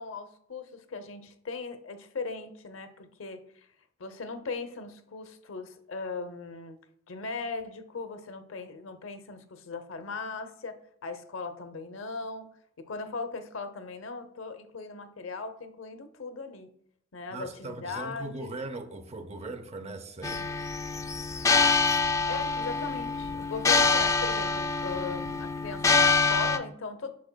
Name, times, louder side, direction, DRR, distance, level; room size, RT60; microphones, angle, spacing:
voice 1, 0.0-3.4 4.0-6.8 7.1-12.5 12.8-16.7 17.1-18.5 22.3-27.1, left 4 dB, 75° left, 0.7 m, -38 dB
voice 2, 17.3-20.5, right 2 dB, 30° right, 0.6 m, -39 dB
sound 1, 20.2-26.6, left 4 dB, 15° left, 0.3 m, -25 dB
8.6 x 6.3 x 2.2 m
head